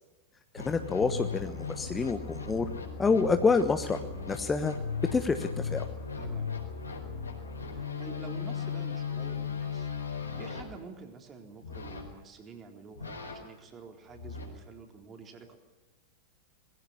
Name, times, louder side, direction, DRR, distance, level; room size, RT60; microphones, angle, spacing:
sound 1, 0.5-10.6 11.6-12.1 12.9-13.4 14.1-14.5, left 5 dB, 75° left, 4.5 m, -37 dB
voice 1, 0.5-2.7 3.0-4.7 5.1-5.9, left 4 dB, 15° left, 9 dB, 1.2 m, -28 dB
voice 2, 6.2-6.5 7.7-15.6, right 4 dB, 25° right, 4 dB, 3.9 m, -48 dB
21.0 x 15.5 x 9.9 m, 1.1 s
figure-of-eight pair, 90°, 0 cm